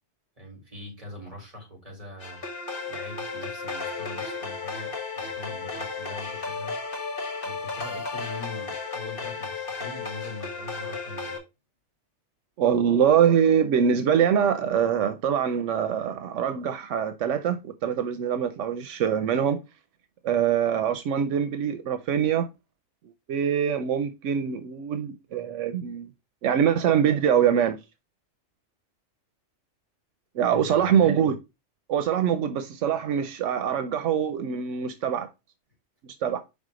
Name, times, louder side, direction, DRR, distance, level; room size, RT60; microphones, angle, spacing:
voice 1, 0.4-2.4 2.9-6.8 7.4-11.4 30.5-31.2, left 2 dB, 30° right, 3.8 m, -42 dB
sound 1, 2.2-11.4, left 4 dB, 50° left, 1.7 m, -34 dB
voice 2, 12.6-19.6 20.2-22.5 23.3-26.1 26.4-27.8 30.3-31.4 31.9-35.3 36.2-36.4, right 8 dB, 85° right, 1.0 m, -24 dB
5.6 x 3.6 x 4.9 m
omnidirectional pair, 1.2 m